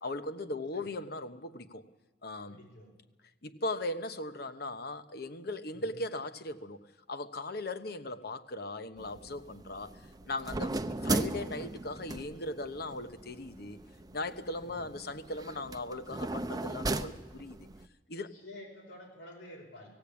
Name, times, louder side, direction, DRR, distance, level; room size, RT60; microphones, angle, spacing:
voice 1, 0.0-1.8 2.2-2.6 3.4-6.8 7.1-10.7 11.0-13.8 14.1-17.7 18.1-18.3, left 2 dB, 60° left, 10 dB, 1.1 m, -38 dB
voice 2, 2.5-3.0 5.7-6.0 10.7-10.9 14.6-14.9 18.1-19.9, left 1 dB, 90° left, -1 dB, 5.4 m, -50 dB
sound 1, 9.0-17.9, right 2 dB, 20° right, 0.7 m, -38 dB
18.0 x 16.5 x 8.7 m, 1.1 s
head